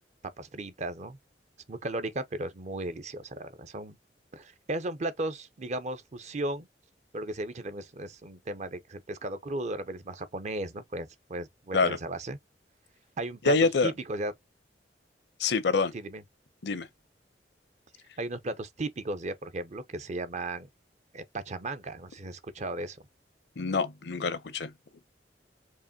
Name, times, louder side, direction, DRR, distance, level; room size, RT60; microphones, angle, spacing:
voice 1, 0.4-1.2 1.7-4.0 4.3-6.7 7.1-12.4 13.2-13.5 13.8-14.3 15.9-16.2 18.2-20.7 21.1-23.0, right 2 dB, 40° right, 0.6 m, -35 dB
voice 2, 13.4-13.9 15.4-15.9 16.6-16.9 23.6-24.7, left 4 dB, 70° left, 0.6 m, -26 dB
4.7 x 2.9 x 2.7 m
head